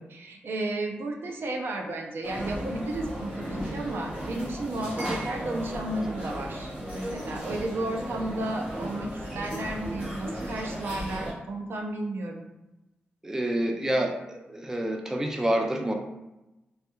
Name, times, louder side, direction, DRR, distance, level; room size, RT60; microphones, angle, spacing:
voice 1, 0.1-12.5, right 2 dB, 70° right, 2 dB, 0.5 m, -33 dB
sound 1, 2.2-11.3, equal, 35° right, 1.2 m, -35 dB
voice 2, 13.2-15.9, right 1 dB, 10° right, 3 dB, 0.3 m, -28 dB
3.1 x 2.3 x 3.0 m, 0.98 s
wide cardioid pair, 105°, 4 cm